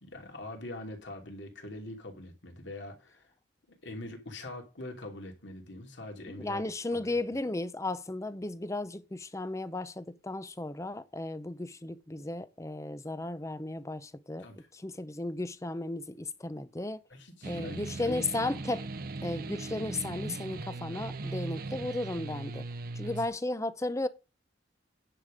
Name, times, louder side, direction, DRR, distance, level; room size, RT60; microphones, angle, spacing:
voice 1, 0.0-3.3 3.7-6.6 6.9-7.2 14.4-14.7 17.1-17.8 18.1-18.2 23.0-23.1, left 2 dB, 70° left, 2.8 m, -43 dB
voice 2, 6.2-14.5 14.7-17.0 17.4-18.9 19.2-22.7 22.9-24.1, left 2 dB, 15° left, 0.6 m, -35 dB
sound 1, 17.4-23.3, right 3 dB, 50° right, 0.7 m, -39 dB
10.0 x 7.4 x 5.0 m
head